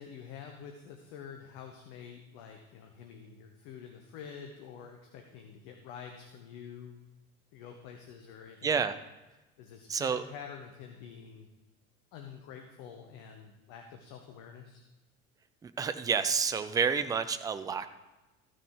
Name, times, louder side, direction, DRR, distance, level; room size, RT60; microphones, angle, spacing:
voice 1, 0.0-7.1 7.5-8.9 9.6-11.5 12.1-14.8, left 7 dB, 50° left, 4 dB, 1.1 m, -47 dB
voice 2, 8.6-8.9 9.9-10.2 15.6-17.9, right 6 dB, 10° right, 11 dB, 0.4 m, -29 dB
14.0 x 6.2 x 4.8 m, 1.1 s
figure-of-eight pair, 65°, 43 cm